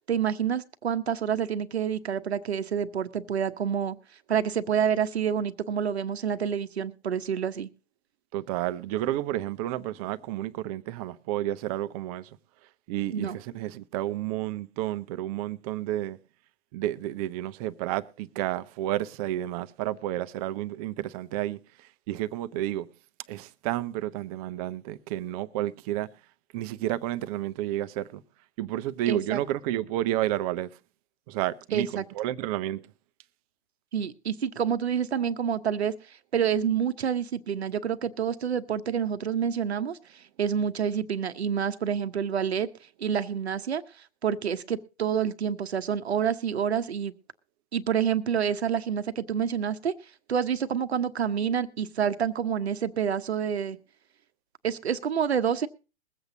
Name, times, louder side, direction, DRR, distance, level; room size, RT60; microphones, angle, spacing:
voice 1, 0.1-4.0 4.3-7.7 13.1-13.4 29.1-29.4 31.7-32.0 33.9-40.0 40.4-42.7 43.0-43.8 44.2-47.1 47.7-49.9 50.3-53.8 54.6-55.7, right 8 dB, 70° right, 1.0 m, -28 dB
voice 2, 8.3-12.3 12.9-16.2 16.7-22.9 23.3-26.1 26.5-28.2 28.6-30.7 31.3-32.8, right 14 dB, 35° right, 0.7 m, -31 dB
21.5 x 8.1 x 3.9 m
figure-of-eight pair, 105°, 34 cm